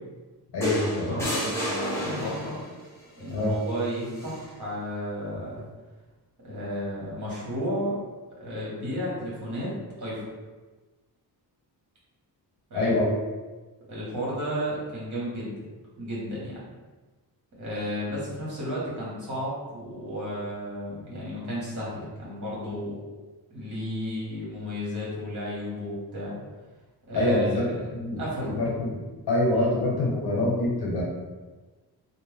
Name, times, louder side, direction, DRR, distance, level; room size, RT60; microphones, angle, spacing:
voice 1, 0.5-1.2 3.3-3.5 12.7-13.1 27.1-27.6 27.9-28.9 29.3-31.0, left 1 dB, 85° left, -4 dB, 1.0 m, -25 dB
sound 1, 0.6-2.7 4.1-4.4, equal, 5° left, 0.8 m, -30 dB
voice 2, 1.1-2.6 3.2-5.6 6.4-8.0 8.4-9.7 10.0-10.2 12.7-12.9 13.9-15.7 16.0-16.6 17.6-23.0 23.5-26.4 27.1-27.8 28.2-28.6 29.5-29.7, equal, 50° right, -7 dB, 1.3 m, -33 dB
2.5 x 2.1 x 3.3 m, 1.3 s
wide cardioid pair, 155°, 39 cm